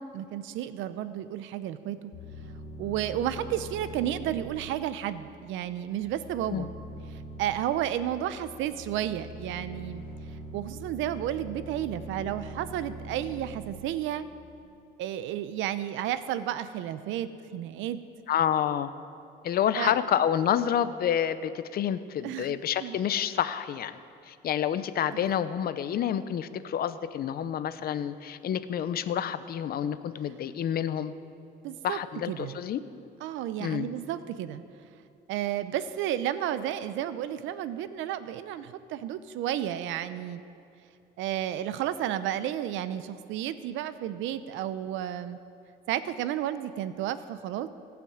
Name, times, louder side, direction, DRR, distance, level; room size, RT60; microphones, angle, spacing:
voice 1, 0.0-2.0 2.8-6.7 7.4-10.0 10.5-14.3 15.0-18.0 19.8-20.0 22.2-23.0 25.1-25.2 31.6-32.0 32.3-32.6 33.2-34.6 35.3-40.4 41.2-45.4 45.9-47.7, right 11 dB, 80° right, 13 dB, 0.7 m, -32 dB
sound 1, 2.1-14.6, right 1 dB, 90° left, 2.5 m, -43 dB
voice 2, 18.3-18.9 19.4-24.0 24.3-31.1 31.8-32.8 33.6-33.9, left 9 dB, 50° left, 13 dB, 0.6 m, -28 dB
17.5 x 6.0 x 7.9 m, 2.6 s
cardioid pair, 110°, 20 cm